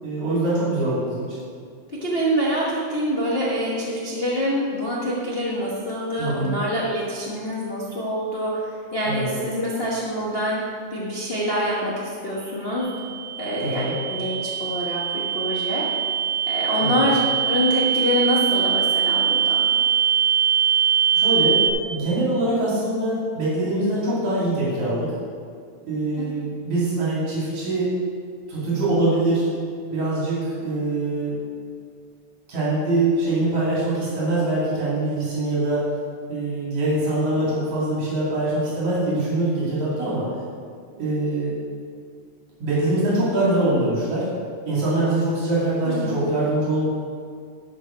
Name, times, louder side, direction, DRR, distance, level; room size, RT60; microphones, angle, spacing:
voice 1, 0.0-1.4 6.2-6.6 9.1-9.4 13.6-13.9 16.8-17.1 21.1-25.1 25.8-27.9 28.5-29.5 29.9-31.4 32.5-35.8 36.3-40.2 41.0-41.5 42.6-44.3 44.6-46.9, right 2 dB, 80° right, -8 dB, 4.1 m, -23 dB
voice 2, 2.0-10.6 10.9-12.9 13.4-15.9 16.5-19.7 45.8-46.2, equal, 65° left, -6 dB, 0.5 m, -25 dB
sound 1, 12.8-21.7, right 8 dB, 60° right, 1.0 m, -22 dB
12.5 x 5.4 x 5.1 m, 2.2 s
omnidirectional pair, 3.3 m